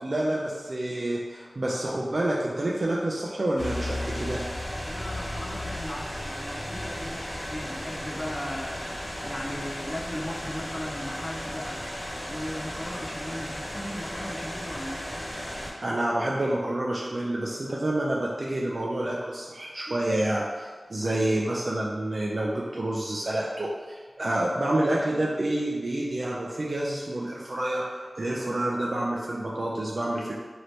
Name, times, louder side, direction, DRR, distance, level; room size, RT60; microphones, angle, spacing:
voice 1, 0.0-4.4 15.8-30.3, right 1 dB, 60° right, -4 dB, 0.4 m, -28 dB
sound 1, 3.6-15.7, left 1 dB, 65° left, 1.1 m, -35 dB
voice 2, 4.8-8.9 9.2-11.9 12.3-15.2, left 1 dB, 35° left, 2 dB, 0.4 m, -37 dB
2.9 x 2.7 x 3.1 m, 1.4 s
wide cardioid pair, 50°, 0 cm